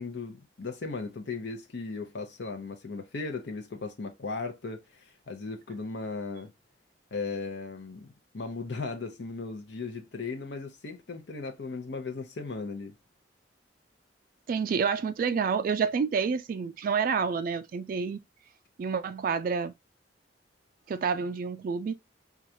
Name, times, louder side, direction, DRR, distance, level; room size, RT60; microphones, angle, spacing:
voice 1, 0.0-6.5 7.1-8.1 8.3-12.9, left 4 dB, 70° left, 0.7 m, -37 dB
voice 2, 14.5-18.2 18.8-19.7 20.9-21.9, right 5 dB, 50° right, 0.3 m, -28 dB
4.6 x 2.4 x 2.7 m
head